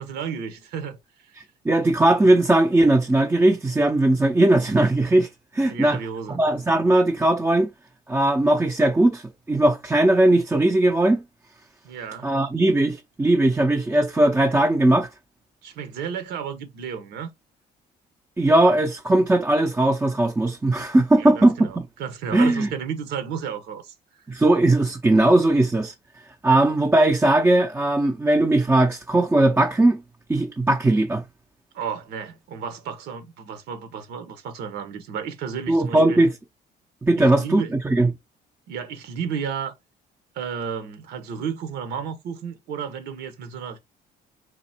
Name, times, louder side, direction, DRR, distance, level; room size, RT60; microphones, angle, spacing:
voice 1, 0.0-1.4 5.7-6.4 11.8-12.3 15.6-17.3 21.2-23.9 31.7-36.2 37.2-37.7 38.7-39.7 40.3-43.8, right 7 dB, 80° right, 1.3 m, -33 dB
voice 2, 1.6-5.3 5.5-6.0 6.3-7.7 8.1-11.2 12.2-15.1 18.4-21.8 22.3-22.7 24.3-25.9 26.4-30.0 30.3-31.2 35.7-36.3 37.0-38.1, right 1 dB, 15° right, 0.6 m, -19 dB
4.1 x 2.5 x 4.4 m
cardioid pair, 110°, 17 cm